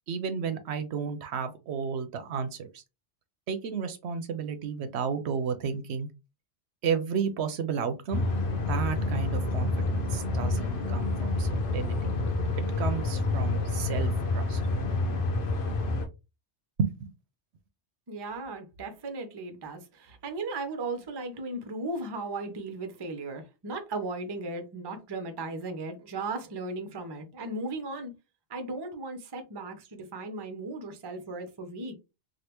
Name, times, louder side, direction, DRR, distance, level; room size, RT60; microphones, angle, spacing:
voice 1, 0.1-2.8 3.5-6.1 6.8-8.2 8.7-12.0 12.8-14.6 16.8-17.1, right 6 dB, 70° right, 0.8 m, -32 dB
sound 1, 8.1-16.1, left 2 dB, 55° left, 0.8 m, -28 dB
voice 2, 18.1-28.1 28.5-32.0, right 2 dB, 30° right, 0.4 m, -36 dB
3.3 x 2.4 x 2.9 m
omnidirectional pair, 1.2 m